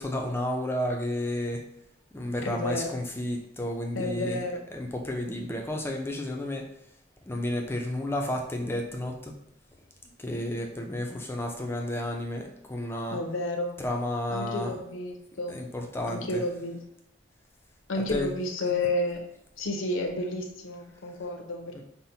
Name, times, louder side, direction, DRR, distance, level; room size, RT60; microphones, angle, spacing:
voice 1, 0.0-1.7 2.1-4.4 4.7-6.7 7.3-9.4 10.2-13.2 13.8-14.8 15.5-16.4 18.1-18.3 21.7-21.8, left 1 dB, 10° left, 1 dB, 0.4 m, -32 dB
voice 2, 2.4-3.0 3.9-4.6 13.1-13.8 14.3-15.6 16.1-16.8 17.9-19.2 19.6-21.8, left 2 dB, 70° left, 4 dB, 0.6 m, -31 dB
5.6 x 2.0 x 2.7 m, 0.79 s
head